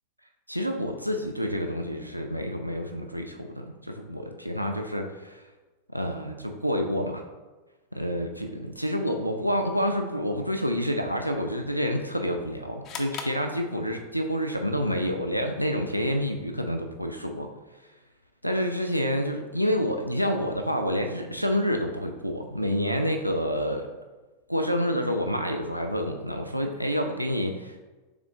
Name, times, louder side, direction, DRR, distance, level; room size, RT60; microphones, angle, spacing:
voice 1, 0.5-5.4 5.9-7.2 7.9-17.5 18.4-23.9 24.5-27.8, equal, 90° right, 3 dB, 0.3 m, -28 dB
sound 1, 12.8-14.3, left 6 dB, 35° left, 0.5 m, -40 dB
3.6 x 3.5 x 3.6 m, 1.2 s
figure-of-eight pair, 90°, 0 cm